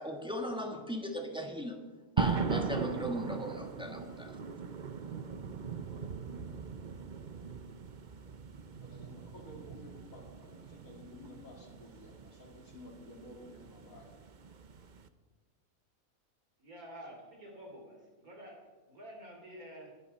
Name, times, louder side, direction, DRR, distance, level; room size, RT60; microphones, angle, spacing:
voice 1, 0.0-1.8 2.2-4.3, equal, 5° right, 3 dB, 1.5 m, -38 dB
sound 1, 2.2-15.1, right 6 dB, 45° right, 0.7 m, -39 dB
voice 2, 8.8-14.1, left 1 dB, 65° left, -1 dB, 3.4 m, -53 dB
voice 3, 16.6-19.9, equal, 75° right, 0 dB, 3.5 m, -49 dB
21.0 x 11.0 x 4.2 m, 1.3 s
omnidirectional pair, 1.5 m